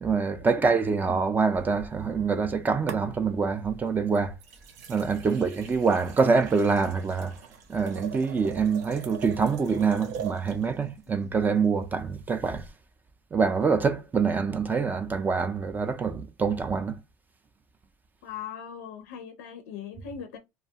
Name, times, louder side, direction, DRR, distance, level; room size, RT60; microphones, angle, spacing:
voice 1, 0.0-4.3 4.9-7.3 7.7-12.7 13.3-16.9, right 5 dB, 20° right, 0.3 m, -25 dB
sound 1, 1.5-2.5 2.9-3.5 4.1-10.7 12.5-12.7, right 7 dB, 85° right, 0.6 m, -42 dB
voice 2, 18.2-20.4, left 8 dB, 85° left, 0.5 m, -40 dB
2.3 x 2.2 x 2.7 m
supercardioid pair, 110°, 9 cm